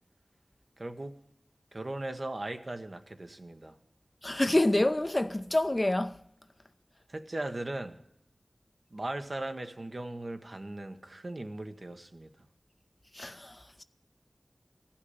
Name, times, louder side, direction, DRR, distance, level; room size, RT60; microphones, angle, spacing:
voice 1, 0.8-1.2 1.7-3.8 7.1-8.0 8.9-12.3, right 2 dB, 55° right, 1.1 m, -38 dB
voice 2, 4.2-6.2 13.1-13.8, left 1 dB, 30° left, 0.6 m, -27 dB
15.0 x 5.8 x 9.7 m
wide cardioid pair, 45°, 0 cm